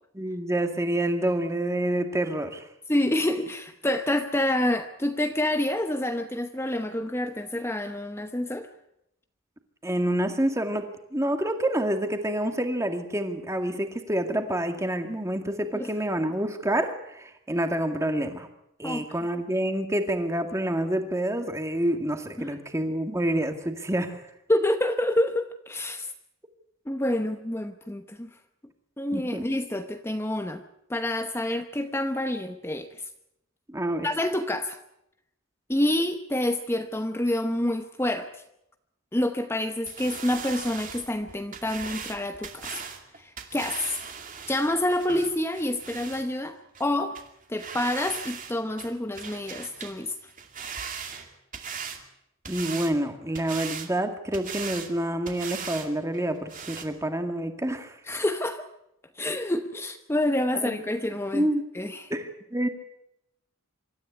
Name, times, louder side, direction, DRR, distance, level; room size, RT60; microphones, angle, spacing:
voice 1, 0.1-2.7 9.8-10.8 11.1-18.5 18.8-24.2 29.1-29.4 33.7-34.1 52.5-57.9 60.5-60.8 61.3-61.6 62.1-62.7, right 1 dB, 15° right, 6 dB, 2.1 m, -28 dB
voice 2, 2.9-8.7 15.7-15.9 18.8-19.1 22.4-22.5 24.5-26.1 26.9-28.3 29.0-30.6 30.9-33.1 34.0-34.8 35.7-38.4 39.1-42.8 43.2-44.0 44.5-47.2 47.5-50.1 58.1-58.7 59.2-61.5 61.7-62.1, left 1 dB, 10° left, 7 dB, 0.9 m, -28 dB
sound 1, 39.9-46.2 46.7-46.8 47.1-47.3 47.6-48.5 48.8-50.0 50.3-52.0 52.4-53.0 53.3-53.9 54.3-54.9 55.3-55.9 56.1-56.2 56.5-56.8, right 6 dB, 40° right, 2.5 m, -38 dB
25.5 x 13.5 x 9.6 m, 0.82 s
head